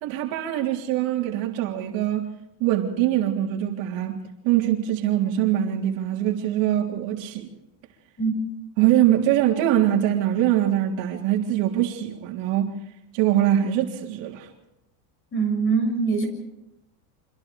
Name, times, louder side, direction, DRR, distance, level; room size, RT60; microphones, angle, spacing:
voice 1, 0.0-2.3 2.6-4.2 4.4-7.5 8.8-12.7 13.1-14.5, right 12 dB, 65° right, 3.6 m, -23 dB
voice 2, 15.3-16.2, right 5 dB, 25° left, 7.0 m, -23 dB
28.5 x 26.0 x 3.5 m
supercardioid pair, 135°, 49 cm